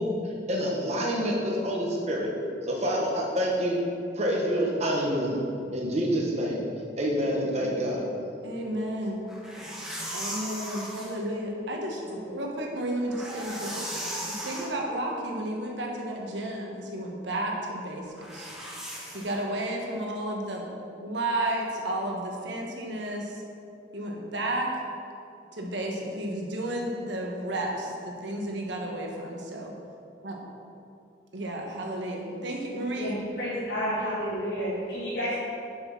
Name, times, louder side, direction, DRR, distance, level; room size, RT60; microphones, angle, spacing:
voice 1, 0.0-2.3 2.6-3.8 4.1-5.4 5.7-6.6 7.0-8.0, equal, 35° right, -2 dB, 1.1 m, -27 dB
voice 2, 8.4-9.2 10.1-13.8 14.3-18.5 19.1-20.7 21.0-23.4 23.9-24.7 25.5-29.7 30.2-30.4 31.3-33.2, right 1 dB, 85° right, 0 dB, 1.3 m, -32 dB
sound 1, 9.3-11.2 13.0-14.7 18.2-19.4, equal, 5° right, 1.1 m, -37 dB
voice 3, 12.0-12.4 33.0-35.4, equal, 65° left, -9 dB, 1.8 m, -31 dB
6.4 x 5.9 x 5.9 m, 2.6 s
head